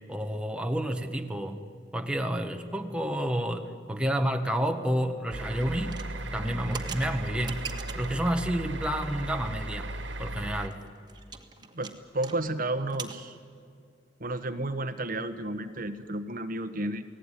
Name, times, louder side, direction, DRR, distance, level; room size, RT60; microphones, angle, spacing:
voice 1, 0.1-1.6 1.9-6.0 6.3-9.9 10.2-10.8, right 1 dB, 5° right, 4 dB, 1.3 m, -30 dB
sound 1, 5.3-10.7, right 1 dB, 80° right, 2.0 m, -36 dB
sound 2, 5.8-8.2 8.8-9.2 9.5-9.6 9.9-10.0 10.4-12.4 12.6-13.2, right 5 dB, 25° right, 1.8 m, -41 dB
voice 2, 11.7-13.4 14.2-17.0, right 1 dB, 50° right, 10 dB, 1.2 m, -32 dB
29.0 x 18.5 x 9.9 m, 2.2 s
head